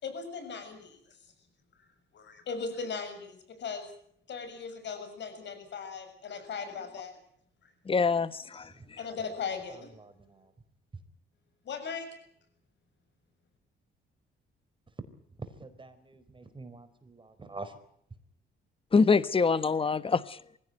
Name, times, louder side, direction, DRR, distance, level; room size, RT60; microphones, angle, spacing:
voice 1, 0.0-1.0 2.1-3.9 4.3-7.2 9.0-9.9 11.7-12.1, left 5 dB, 65° left, 7.2 m, -38 dB
voice 2, 7.9-8.7 18.9-20.6, left 4 dB, 25° left, 1.2 m, -25 dB
voice 3, 10.0-10.4 15.6-17.7, right 3 dB, 25° right, 4.4 m, -46 dB
23.5 x 16.5 x 9.2 m
cardioid pair, 90°, 20 cm